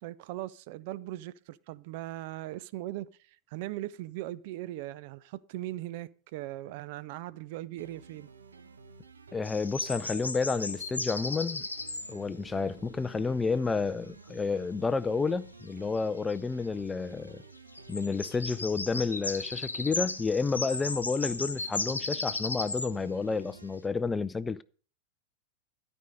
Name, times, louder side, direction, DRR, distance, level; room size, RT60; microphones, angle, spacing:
voice 1, 0.0-8.3, right 15 dB, 50° right, 0.4 m, -39 dB
sound 1, 7.8-23.8, right 5 dB, 70° right, 1.0 m, -52 dB
voice 2, 9.3-11.6 12.1-17.4 17.9-24.6, left 4 dB, 15° left, 0.4 m, -30 dB
sound 2, 9.4-12.2 16.0-16.1 16.3-16.4 17.7-22.9, left 3 dB, 80° left, 0.9 m, -35 dB
12.5 x 5.3 x 6.4 m
figure-of-eight pair, 90°, 0 cm